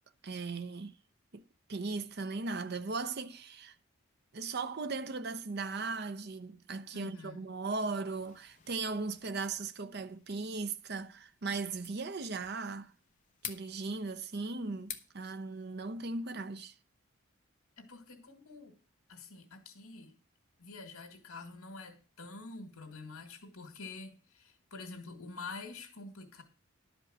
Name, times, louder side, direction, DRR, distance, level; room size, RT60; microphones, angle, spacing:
voice 1, 0.2-1.0 1.3-1.4 1.7-3.8 4.3-12.9 13.4-16.7, right 3 dB, 50° right, 0.7 m, -38 dB
voice 2, 6.9-7.4 17.8-18.8 19.1-20.2 20.6-26.4, left 3 dB, 85° left, 2.1 m, -47 dB
sound 1, 8.1-16.5, left 8 dB, 35° left, 1.0 m, -52 dB
11.5 x 5.2 x 7.8 m
head